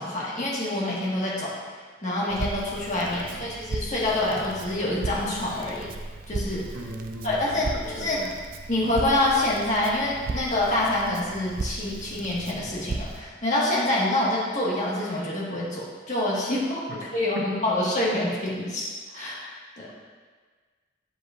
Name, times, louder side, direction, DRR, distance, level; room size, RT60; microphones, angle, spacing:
voice 1, 0.0-1.5 2.0-5.9 6.3-6.6 7.2-8.2 8.7-19.5 19.8-19.9, left 1 dB, 40° left, -6 dB, 1.7 m, -26 dB
Crackle, 2.3-13.2, right 2 dB, 45° right, 0.5 m, -36 dB
voice 2, 6.7-8.4 16.9-17.0, right 1 dB, 70° right, 0 dB, 0.9 m, -38 dB
7.9 x 7.6 x 2.6 m, 1.5 s
head